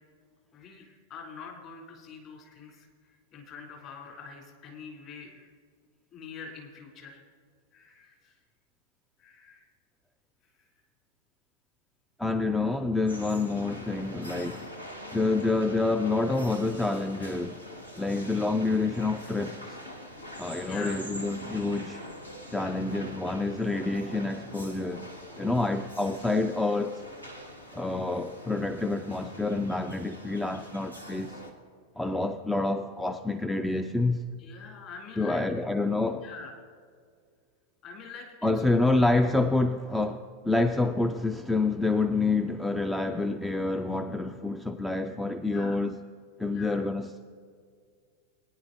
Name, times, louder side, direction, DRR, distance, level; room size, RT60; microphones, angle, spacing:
voice 1, 0.5-5.5 6.1-7.2 7.7-8.4 9.2-9.7 10.5-10.6 12.4-12.6 15.3-15.5 20.0-20.2 20.6-21.0 27.9-28.1 34.4-35.4 36.1-36.6 37.8-39.1 45.4-45.8 46.5-46.8, left 5 dB, 40° left, 3.1 m, -45 dB
voice 2, 12.2-14.7 15.1-17.6 18.0-19.8 20.4-22.0 22.5-25.1 25.4-27.0 27.7-31.4 32.0-34.3 35.2-36.3 38.4-46.0 46.4-47.1, left 3 dB, 5° left, 0.4 m, -28 dB
sound 1, 13.1-31.5, equal, 85° left, 1.4 m, -44 dB
21.5 x 10.0 x 2.6 m
figure-of-eight pair, 90°, 0 cm